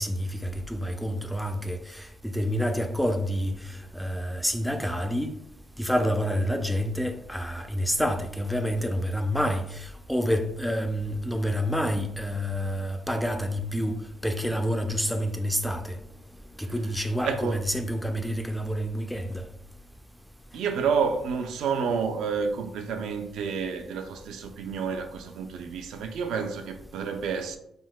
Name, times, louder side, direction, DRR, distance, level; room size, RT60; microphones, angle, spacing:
voice 1, 0.0-5.3 5.8-14.0 14.2-16.0 16.6-19.5, equal, ahead, 0.3 m, -28 dB
voice 2, 17.2-17.6 20.5-27.6, right 6 dB, 80° right, 0.3 m, -29 dB
3.7 x 2.6 x 2.2 m
cardioid pair, 90°, 0 cm